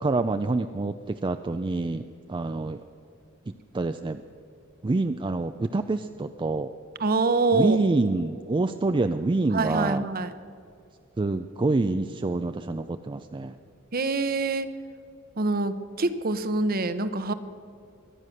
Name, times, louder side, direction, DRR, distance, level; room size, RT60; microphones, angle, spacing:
voice 1, 0.0-2.8 3.5-4.2 4.8-6.7 7.5-10.0 11.2-13.6, right 3 dB, 25° right, 9 dB, 0.4 m, -27 dB
voice 2, 7.0-7.8 9.5-10.3 13.9-14.7 15.4-17.3, right 3 dB, 45° right, 12 dB, 0.9 m, -25 dB
23.5 x 9.3 x 6.5 m, 2.5 s
head